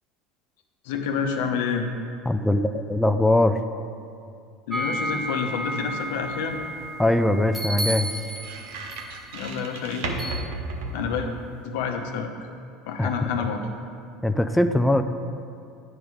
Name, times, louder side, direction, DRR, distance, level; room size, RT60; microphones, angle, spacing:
voice 1, 0.8-1.9 4.7-6.6 9.3-10.1 10.9-11.3 11.6-12.3 12.9-13.6, left 6 dB, 70° left, 4 dB, 0.8 m, -28 dB
voice 2, 2.3-3.6 7.0-8.1 13.0-13.1 14.2-15.0, left 1 dB, 5° left, 6 dB, 0.4 m, -21 dB
sound 1, 4.7-9.0 10.2-10.4, equal, 15° right, 0.9 m, -32 dB
sound 2, 5.4-11.7, right 2 dB, 70° right, 0.9 m, -37 dB
9.4 x 5.2 x 4.8 m, 2.4 s
hypercardioid pair, 80°, 0 cm